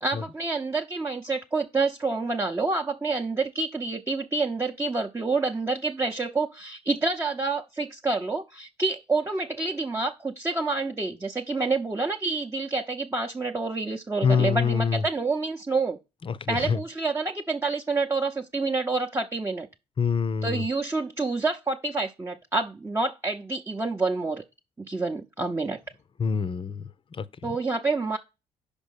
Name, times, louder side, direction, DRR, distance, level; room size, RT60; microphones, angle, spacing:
voice 1, 0.0-16.0 16.5-19.7 20.4-24.4 24.9-25.8 27.4-28.2, right 3 dB, 15° right, 0.9 m, -28 dB
voice 2, 14.2-15.0 16.2-16.8 20.0-20.6 26.2-26.8 27.1-27.3, left 6 dB, 35° left, 0.7 m, -25 dB
5.3 x 5.1 x 6.5 m
supercardioid pair, 60°, 15 cm